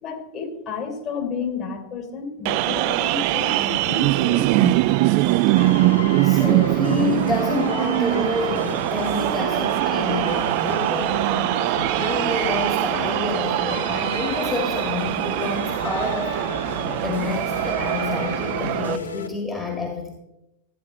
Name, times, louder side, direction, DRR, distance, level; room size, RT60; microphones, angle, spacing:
voice 1, 0.0-4.8, left 6 dB, 35° left, 2 dB, 3.4 m, -31 dB
sound 1, 2.5-19.0, right 17 dB, 45° right, 0.3 m, -22 dB
sound 2, 5.6-19.3, left 4 dB, 70° left, 0.8 m, -34 dB
voice 2, 6.2-11.5 12.0-20.1, left 3 dB, 15° left, 0 dB, 1.7 m, -28 dB
14.0 x 9.3 x 4.3 m, 0.89 s
figure-of-eight pair, 90°, 0 cm